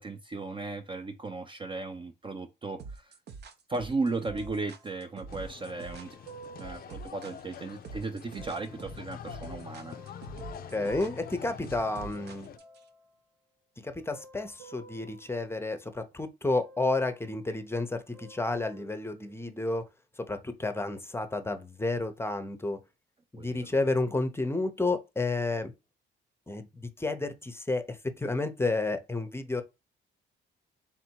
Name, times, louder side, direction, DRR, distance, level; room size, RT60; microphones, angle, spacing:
voice 1, 0.0-3.1 3.7-6.2 6.6-10.0 23.4-23.8, right 3 dB, 25° right, 0.4 m, -36 dB
sound 1, 2.8-12.8, right 4 dB, 60° right, 0.7 m, -45 dB
sound 2, 4.2-7.8 8.4-11.9 12.6-13.2 13.8-16.2 16.6-17.6 17.9-19.9 20.6-20.7, right 2 dB, 85° right, 1.9 m, -54 dB
sound 3, 5.3-12.6, left 9 dB, 50° left, 0.4 m, -46 dB
voice 2, 10.7-12.5 13.8-19.8 20.2-22.8 23.3-25.7 26.5-29.6, left 2 dB, 10° left, 0.7 m, -31 dB
3.6 x 2.7 x 4.5 m
cardioid pair, 90°, 20 cm